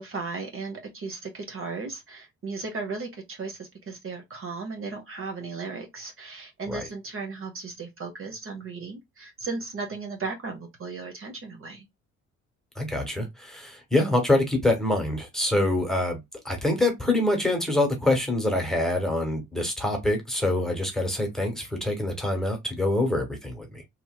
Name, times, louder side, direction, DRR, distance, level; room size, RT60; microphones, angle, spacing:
voice 1, 0.0-11.8, right 4 dB, 45° right, 0.9 m, -36 dB
voice 2, 12.8-16.2 16.4-23.8, left 1 dB, ahead, 1.3 m, -25 dB
3.0 x 2.6 x 2.2 m
cardioid pair, 90°, 30 cm